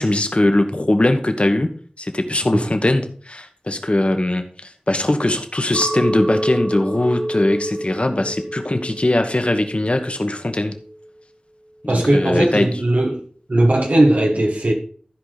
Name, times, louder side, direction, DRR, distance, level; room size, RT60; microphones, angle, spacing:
voice 1, 0.0-10.7 11.8-12.7 14.4-14.5, left 1 dB, 50° left, 1.3 m, -20 dB
Chink clink, 5.7-10.1 10.5-11.1, right 1 dB, 50° right, 1.1 m, -28 dB
voice 2, 11.9-13.2 13.5-14.7, right 1 dB, 75° right, 1.5 m, -17 dB
14.5 x 5.0 x 4.0 m
wide cardioid pair, 45°, 3 cm